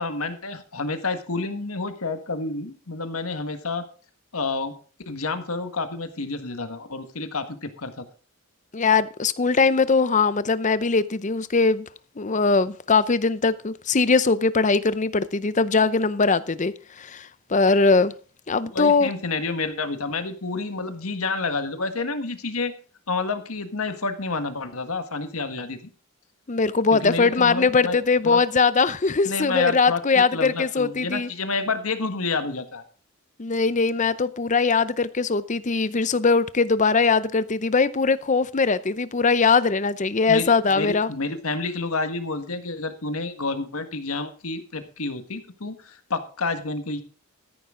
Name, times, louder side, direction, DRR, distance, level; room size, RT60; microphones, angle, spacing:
voice 1, 0.0-3.8 4.3-4.7 5.1-8.0 18.6-22.7 23.1-25.8 26.9-28.0 28.2-28.4 29.2-32.8 40.3-47.0, left 3 dB, 85° left, 1.7 m, -29 dB
voice 2, 8.7-11.8 12.2-18.1 18.5-19.1 26.5-31.3 33.4-41.1, left 4 dB, 35° left, 0.6 m, -21 dB
13.5 x 10.5 x 3.8 m
head